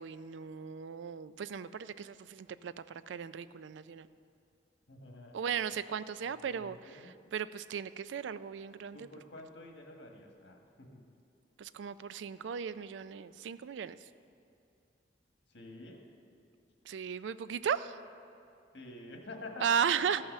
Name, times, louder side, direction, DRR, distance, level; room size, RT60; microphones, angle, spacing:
voice 1, 0.0-4.1 5.3-6.8 7.3-9.0 11.6-14.0 16.9-17.9 19.6-20.2, right 7 dB, 90° right, 14 dB, 0.4 m, -36 dB
voice 2, 4.9-5.6 6.2-7.3 8.9-11.0 15.5-16.0 18.7-20.1, left 2 dB, 80° left, 2 dB, 1.5 m, -49 dB
14.0 x 5.7 x 6.6 m, 2.5 s
head